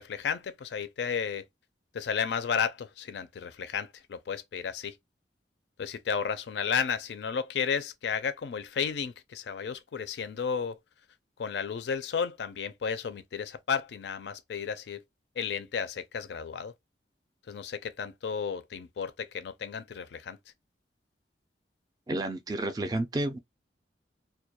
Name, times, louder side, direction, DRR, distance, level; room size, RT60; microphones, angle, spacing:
voice 1, 0.0-1.4 1.9-4.9 5.8-10.8 11.4-15.0 15.4-16.7 17.5-20.4, left 6 dB, 70° left, 0.4 m, -33 dB
voice 2, 22.1-23.4, right 2 dB, 20° right, 0.3 m, -30 dB
2.2 x 2.2 x 2.7 m
head